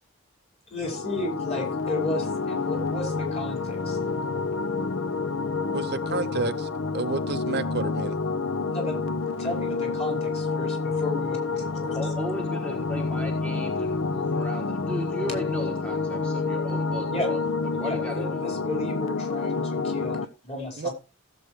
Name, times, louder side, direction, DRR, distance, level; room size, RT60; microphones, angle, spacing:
voice 1, 0.7-4.0 8.7-12.0 17.1-17.3 17.8-20.9, left 2 dB, 30° left, 5.1 m, -34 dB
sound 1, 0.8-20.2, left 4 dB, 65° left, 0.8 m, -28 dB
voice 2, 5.7-6.7 6.9-8.2 20.8-20.9, right 4 dB, 50° right, 0.6 m, -30 dB
voice 3, 11.9-17.4 17.8-18.8, equal, 5° left, 1.3 m, -36 dB
16.0 x 8.0 x 3.2 m
head